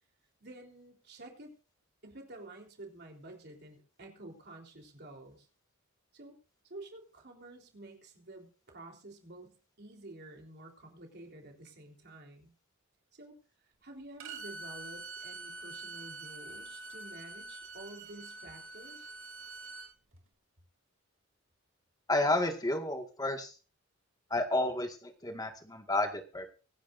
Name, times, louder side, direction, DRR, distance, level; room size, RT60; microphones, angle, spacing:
voice 1, 0.4-1.5 2.0-5.5 6.1-6.4 6.7-9.5 9.8-12.5 13.1-13.4 13.8-19.1, right 2 dB, 50° right, 2 dB, 3.8 m, -50 dB
Bowed string instrument, 14.2-19.9, right 3 dB, 75° right, 2.7 m, -45 dB
voice 2, 22.1-23.5 24.3-26.5, left 2 dB, 20° left, 5 dB, 1.9 m, -31 dB
24.5 x 10.5 x 2.6 m, 0.34 s
head